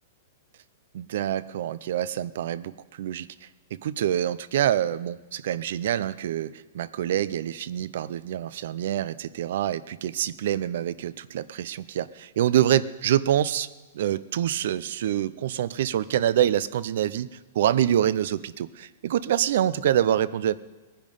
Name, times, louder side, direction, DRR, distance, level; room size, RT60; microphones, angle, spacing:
voice 1, 0.9-13.7 13.9-20.5, right 11 dB, 55° right, 18 dB, 0.5 m, -26 dB
20.5 x 10.0 x 5.4 m, 1.2 s
supercardioid pair, 175°, 0 cm